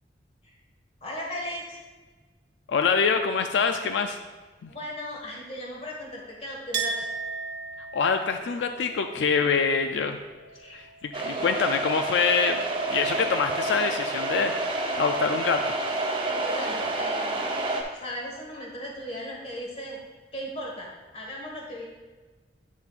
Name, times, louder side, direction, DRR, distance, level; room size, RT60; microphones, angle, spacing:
voice 1, 1.0-1.8 4.7-7.1 10.5-10.8 11.2-11.5 16.3-17.4 17.9-20.0 20.3-21.8, equal, 35° left, -2 dB, 1.6 m, -37 dB
voice 2, 2.7-4.2 4.6-4.7 7.9-10.2 10.7-12.6 12.9-15.7, left 5 dB, 90° left, 6 dB, 0.4 m, -25 dB
Chink clink, 6.7-12.3 12.5-13.4, right 4 dB, 75° right, 0.9 m, -38 dB
sound 1, 11.1-17.8, right 2 dB, 30° right, 0.7 m, -29 dB
8.4 x 6.9 x 2.5 m, 1.3 s
head